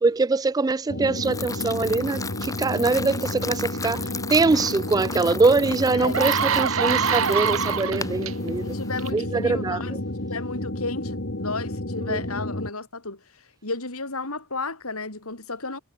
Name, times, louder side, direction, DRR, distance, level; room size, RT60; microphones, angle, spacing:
voice 1, 0.0-8.7 9.1-9.8 12.1-12.2, right 3 dB, 15° right, 0.3 m, -23 dB
sound 1, 0.9-12.7, left 1 dB, 55° left, 2.6 m, -31 dB
sound 2, 1.2-9.1, left 4 dB, 15° left, 2.7 m, -36 dB
sound 3, 5.4-5.5 5.9-8.3 9.0-9.2, right 7 dB, 65° right, 0.9 m, -24 dB
voice 2, 8.6-10.0 10.3-15.8, left 3 dB, 80° left, 5.5 m, -33 dB
head